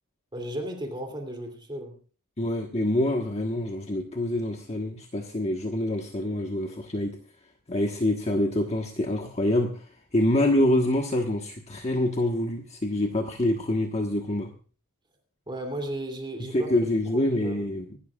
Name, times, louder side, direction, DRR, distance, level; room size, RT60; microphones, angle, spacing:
voice 1, 0.3-2.0 15.5-17.6, right 1 dB, 20° right, 4 dB, 2.8 m, -35 dB
voice 2, 2.4-7.2 7.7-9.9 10.1-14.5 16.5-18.0, left 1 dB, 30° left, 3 dB, 1.3 m, -26 dB
25.0 x 12.5 x 2.4 m, 0.38 s
head